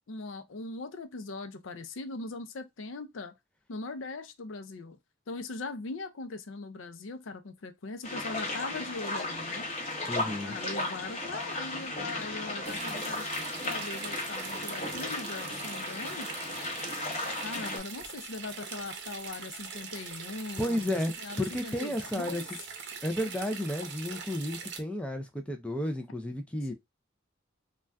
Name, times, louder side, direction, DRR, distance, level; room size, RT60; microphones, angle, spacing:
voice 1, 0.1-3.3 3.7-5.0 5.3-9.6 10.4-13.3 13.6-16.3 17.4-22.4, left 3 dB, 70° left, 0.5 m, -40 dB
sound 1, 8.0-17.8, left 2 dB, 30° left, 1.0 m, -35 dB
voice 2, 10.1-10.6 20.6-21.1 21.4-22.4 23.0-26.7, left 1 dB, 5° left, 0.4 m, -32 dB
sound 2, 12.6-24.8, right 5 dB, 55° right, 0.7 m, -42 dB
2.5 x 2.3 x 3.3 m
head